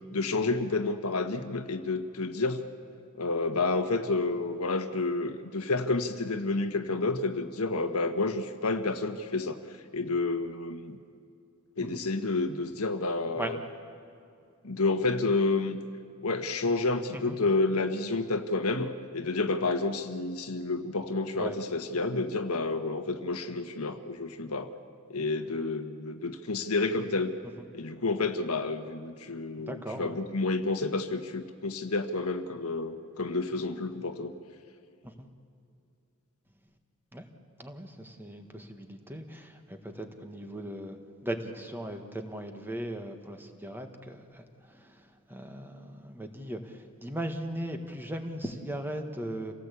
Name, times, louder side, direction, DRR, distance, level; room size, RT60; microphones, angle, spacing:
voice 1, 0.1-2.6 3.2-9.6 9.9-11.0 11.8-13.6 14.6-15.8 16.2-24.7 25.1-27.3 27.7-34.3, left 3 dB, 85° left, 7 dB, 1.5 m, -30 dB
voice 2, 29.6-30.2 35.0-35.3 37.1-37.2 37.6-41.0 41.2-44.4 44.8-44.9 45.3-49.5, right 1 dB, 10° right, 5 dB, 1.6 m, -38 dB
28.0 x 17.5 x 8.4 m, 2.5 s
head